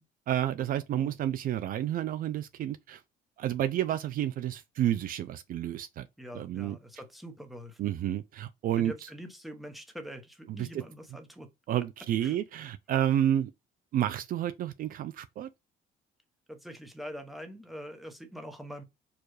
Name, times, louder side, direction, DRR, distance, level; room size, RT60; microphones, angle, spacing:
voice 1, 0.3-3.0 3.4-6.1 6.3-6.8 7.8-8.9 10.6-10.7 11.7-13.5 13.9-15.5, right 11 dB, 55° right, 0.4 m, -30 dB
voice 2, 6.2-7.9 8.8-11.5 12.2-12.4 16.5-18.8, equal, ahead, 1.0 m, -44 dB
4.7 x 2.4 x 4.7 m
cardioid pair, 110°, 17 cm